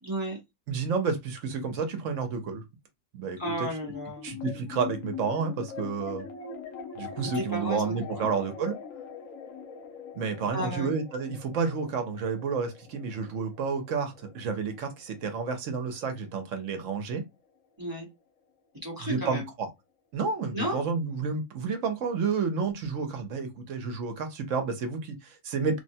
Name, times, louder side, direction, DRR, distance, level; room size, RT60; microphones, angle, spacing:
voice 1, 0.0-0.4 3.4-4.4 7.3-8.3 10.5-10.9 17.8-18.1 18.8-19.5 20.5-20.8, right 1 dB, 15° right, 0.9 m, -33 dB
voice 2, 0.7-2.6 3.1-3.4 4.2-6.3 7.0-8.8 10.1-17.2 19.1-19.4 20.1-25.8, right 5 dB, 70° right, 1.0 m, -30 dB
sound 1, 3.4-16.0, left 6 dB, 75° left, 1.2 m, -42 dB
3.2 x 2.1 x 2.7 m
omnidirectional pair, 1.4 m